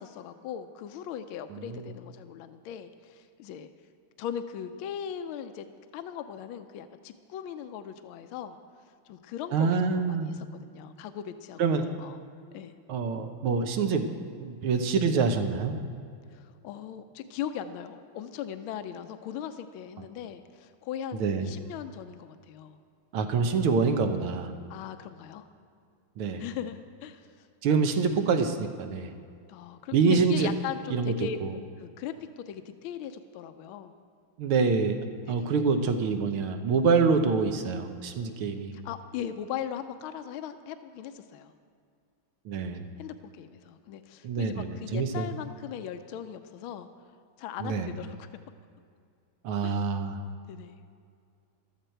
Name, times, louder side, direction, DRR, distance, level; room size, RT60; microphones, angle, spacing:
voice 1, 0.0-3.7 4.2-5.7 5.9-8.6 9.1-12.2 12.5-12.7 16.3-22.8 24.7-25.5 26.4-27.5 29.5-31.4 31.8-33.9 35.2-35.5 38.7-41.5 43.0-46.9 47.4-48.2 49.6-49.8 50.5-50.8, left 9 dB, 80° left, 9 dB, 1.4 m, -39 dB
voice 2, 1.5-1.9 9.5-10.4 11.6-11.9 12.9-14.1 14.4-15.8 20.0-20.1 21.2-21.5 23.1-24.5 26.2-26.4 27.6-29.1 29.9-30.5 30.9-31.1 31.4-31.5 34.4-35.0 35.3-38.8 42.5-42.8 44.2-45.3 47.6-47.9 49.4-50.2, right 5 dB, 80° right, 6 dB, 1.8 m, -26 dB
15.0 x 13.0 x 4.5 m, 2.3 s
omnidirectional pair, 2.4 m